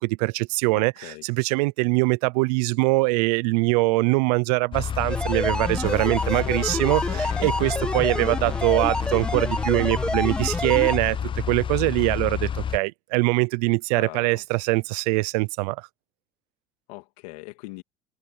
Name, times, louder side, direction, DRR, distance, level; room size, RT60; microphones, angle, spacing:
voice 1, 0.0-15.9, right 26 dB, 85° right, 0.7 m, -23 dB
voice 2, 0.7-1.2 13.9-14.4 16.9-17.8, left 23 dB, 85° left, 2.8 m, -40 dB
sound 1, 4.7-12.8, left 8 dB, 25° left, 0.5 m, -29 dB
sound 2, 5.1-11.0, left 1 dB, 5° left, 1.6 m, -29 dB
sound 3, 5.8-9.6, left 21 dB, 70° left, 4.3 m, -40 dB
supercardioid pair, 100°, 20 cm